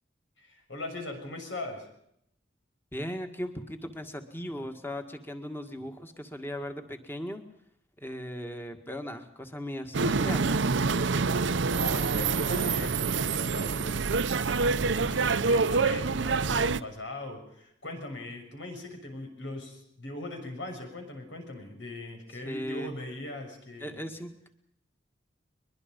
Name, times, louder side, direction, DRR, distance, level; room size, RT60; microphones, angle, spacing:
voice 1, 0.4-1.9 11.3-14.5 14.9-24.0, left 2 dB, 85° left, 4 dB, 6.7 m, -40 dB
voice 2, 2.9-7.4 8.0-10.7 22.5-22.9 23.8-24.5, equal, 10° left, 6 dB, 1.9 m, -38 dB
sound 1, 9.9-16.8, right 4 dB, 80° right, 0.7 m, -26 dB
22.5 x 22.5 x 5.4 m, 0.75 s
head